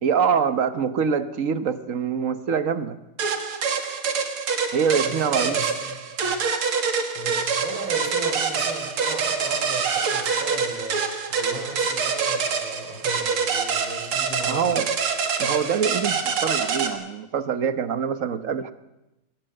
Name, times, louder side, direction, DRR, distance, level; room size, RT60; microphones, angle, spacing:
voice 1, 0.0-3.0 4.7-5.6 14.5-14.9 15.4-18.7, right 7 dB, 45° right, 11 dB, 1.2 m, -24 dB
sound 1, 3.2-16.9, right 5 dB, 90° right, 2.7 m, -25 dB
voice 2, 5.1-6.4 7.1-11.0 11.3-14.9, right 3 dB, 70° right, 3 dB, 4.1 m, -36 dB
21.5 x 18.5 x 7.7 m, 0.94 s
omnidirectional pair, 2.3 m